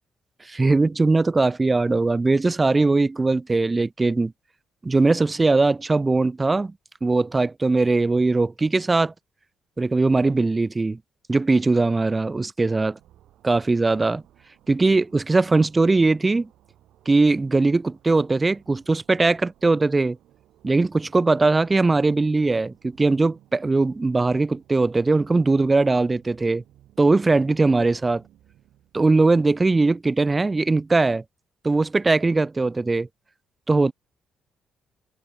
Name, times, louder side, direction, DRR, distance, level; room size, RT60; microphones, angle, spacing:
voice 1, 0.5-4.3 4.8-6.7 7.0-9.1 9.8-11.0 11.3-13.0 13.4-14.2 14.7-16.5 17.1-20.2 20.6-26.6 27.0-28.2 28.9-31.2 31.6-33.1 33.7-33.9, right 3 dB, 20° right, 0.3 m, -20 dB
sound 1, 12.9-29.1, right 13 dB, 80° right, 3.4 m, -58 dB
cardioid pair, 90°, 0 cm